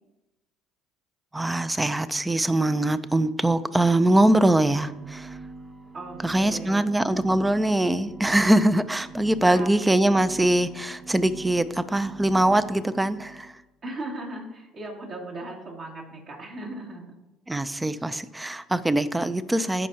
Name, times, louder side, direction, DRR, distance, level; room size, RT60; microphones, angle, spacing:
voice 1, 1.3-5.4 6.2-13.5 17.5-19.9, right 1 dB, 10° right, 14 dB, 0.5 m, -22 dB
sound 1, 3.8-13.5, right 3 dB, 30° right, 1.6 m, -44 dB
voice 2, 5.9-6.8 9.4-9.7 13.8-17.1, right 2 dB, 50° right, -3 dB, 2.7 m, -37 dB
15.0 x 5.4 x 2.9 m, 1.0 s
supercardioid pair, 90°, 0 cm